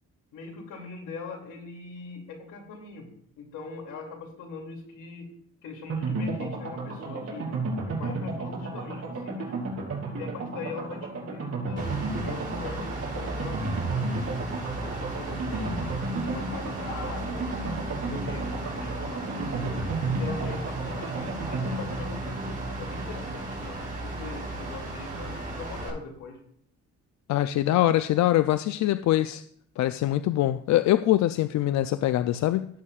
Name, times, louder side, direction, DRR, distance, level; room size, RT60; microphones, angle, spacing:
voice 1, 0.3-3.1 3.4-5.3 5.6-7.5 7.9-9.5 10.2-14.4 14.8-17.5 17.9-19.9 20.2-26.4, left 4 dB, 85° left, 1 dB, 2.6 m, -41 dB
sound 1, 5.9-24.5 24.8-24.9 25.1-25.2, right 3 dB, 50° right, 4.4 m, -33 dB
Mechanical fan, 11.8-25.9, right 2 dB, 30° right, 4.9 m, -36 dB
voice 2, 27.3-29.4 29.8-32.7, left 14 dB, 65° left, 12 dB, 0.4 m, -23 dB
16.5 x 8.3 x 2.4 m, 0.66 s
cardioid pair, 90°, 30 cm